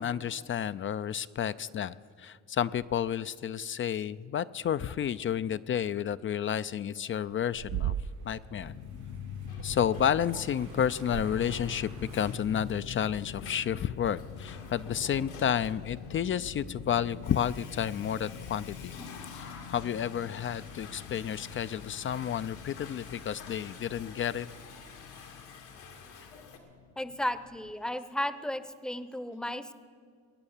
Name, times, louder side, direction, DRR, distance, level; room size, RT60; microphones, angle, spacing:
voice 1, 0.0-7.9 8.2-8.8 9.6-18.9 19.3-24.5, left 9 dB, 45° left, 15 dB, 0.4 m, -31 dB
sound 1, 6.7-8.5 9.3-12.3, right 10 dB, 70° right, 0.6 m, -39 dB
sound 2, 8.5-27.7, left 7 dB, 70° left, 1.3 m, -45 dB
Water / Toilet flush, 9.1-26.6, left 5 dB, 90° left, 2.3 m, -50 dB
voice 2, 27.0-29.7, left 1 dB, ahead, 13 dB, 0.7 m, -34 dB
21.5 x 9.0 x 7.2 m, 2.1 s
cardioid pair, 90°, 30 cm